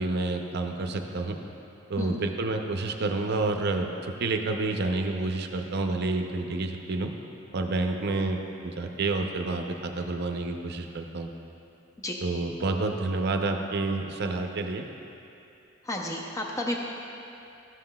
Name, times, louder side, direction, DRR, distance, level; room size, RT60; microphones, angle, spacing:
voice 1, 0.0-1.4 1.9-7.1 7.5-11.3 12.2-14.9, right 2 dB, 55° right, 4 dB, 0.5 m, -29 dB
voice 2, 15.8-16.8, left 1 dB, 15° left, 0 dB, 0.5 m, -31 dB
13.0 x 7.5 x 2.2 m, 2.7 s
head